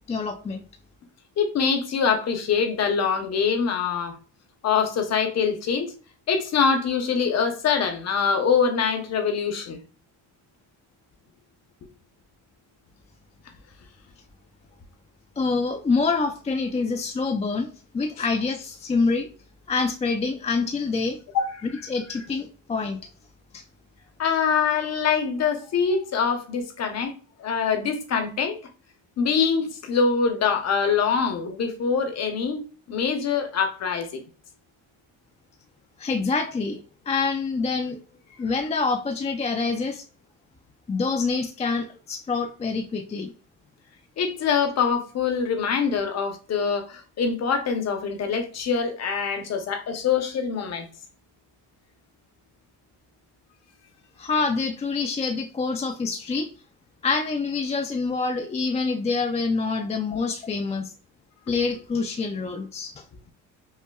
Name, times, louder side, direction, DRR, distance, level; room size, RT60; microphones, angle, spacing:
voice 1, 0.1-0.6 15.4-17.7 17.9-19.3 19.7-21.2 21.9-23.0 23.5-23.6 36.0-36.8 37.1-38.0 38.4-40.0 40.9-43.3 54.2-56.5 57.0-60.9 61.5-63.0, left 4 dB, 20° left, 0.4 m, -26 dB
voice 2, 1.4-4.1 4.6-5.9 6.3-9.8 21.3-21.8 24.2-27.1 27.4-28.6 29.2-34.2 44.2-50.9, left 6 dB, 55° left, 0.9 m, -24 dB
5.4 x 2.2 x 2.3 m
cardioid pair, 95°, 32 cm